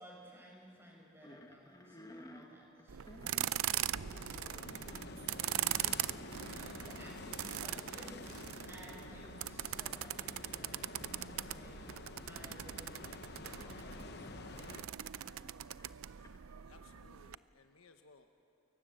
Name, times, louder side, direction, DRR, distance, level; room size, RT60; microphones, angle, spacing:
voice 1, 0.0-3.3 4.1-4.7 5.4-14.6, equal, 10° right, -2 dB, 6.3 m, -57 dB
sound 1, 1.2-5.3 5.8-6.7 7.0-7.4 7.7-7.8 8.9-9.5 9.8-10.1 10.7-10.8 11.3-11.4 12.4-12.8 13.1-17.7, left 1 dB, 20° left, 1.5 m, -57 dB
sound 2, 2.9-17.3, right 12 dB, 85° right, 0.5 m, -41 dB
sound 3, 3.9-14.8, left 3 dB, 50° left, 0.9 m, -49 dB
voice 2, 16.6-18.3, left 3 dB, 85° left, 6 dB, 1.2 m, -62 dB
29.0 x 22.5 x 7.9 m, 2.6 s
head